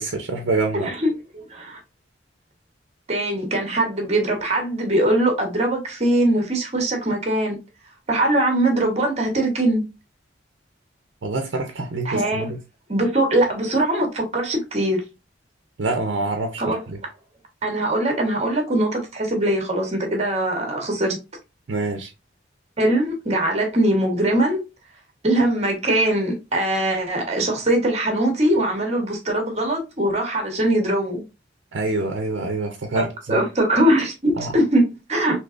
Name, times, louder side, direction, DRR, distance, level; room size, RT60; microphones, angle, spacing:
voice 1, 0.0-0.9 11.2-12.6 15.8-17.0 21.7-22.1 31.7-33.4 34.4-34.6, right 3 dB, 75° right, 0.6 m, -26 dB
voice 2, 0.8-1.8 3.1-7.6 8.1-9.8 12.0-12.5 12.9-15.0 16.6-16.8 17.6-21.2 22.8-24.6 25.2-31.2 33.0-35.4, right 1 dB, 35° right, 1.1 m, -21 dB
3.8 x 2.8 x 2.4 m
head